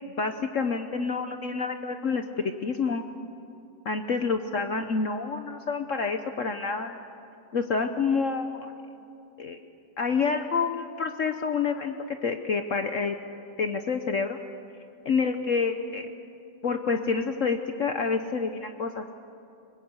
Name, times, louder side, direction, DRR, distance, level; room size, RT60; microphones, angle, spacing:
voice 1, 0.1-3.0 3.8-7.0 7.5-8.7 9.4-9.6 10.0-13.2 13.6-14.4 15.0-16.1 16.6-19.1, left 5 dB, 55° left, 6 dB, 1.0 m, -28 dB
23.5 x 20.5 x 8.1 m, 2.7 s
omnidirectional pair, 1.9 m